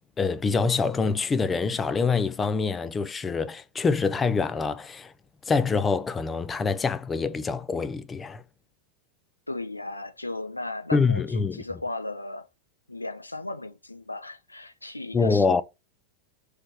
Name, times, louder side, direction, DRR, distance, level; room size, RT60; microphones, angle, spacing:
voice 1, 0.2-5.1 5.5-8.4 10.9-11.6 15.1-15.6, left 4 dB, 15° left, 0.3 m, -25 dB
voice 2, 9.5-12.5 12.9-15.6, left 2 dB, 85° left, 0.5 m, -36 dB
3.3 x 3.1 x 4.3 m
figure-of-eight pair, 90°, 0 cm